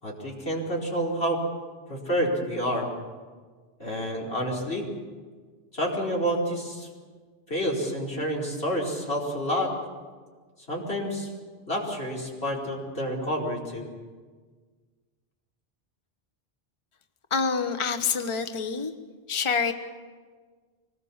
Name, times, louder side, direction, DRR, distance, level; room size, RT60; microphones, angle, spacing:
voice 1, 0.0-1.4 1.9-2.9 3.8-4.9 5.7-6.9 7.5-9.7 10.7-11.3 11.7-13.8, equal, 90° left, -2 dB, 4.9 m, -29 dB
voice 2, 17.3-18.9 19.3-19.7, left 5 dB, 30° left, 8 dB, 1.0 m, -26 dB
24.5 x 20.0 x 7.3 m, 1.5 s
omnidirectional pair, 1.0 m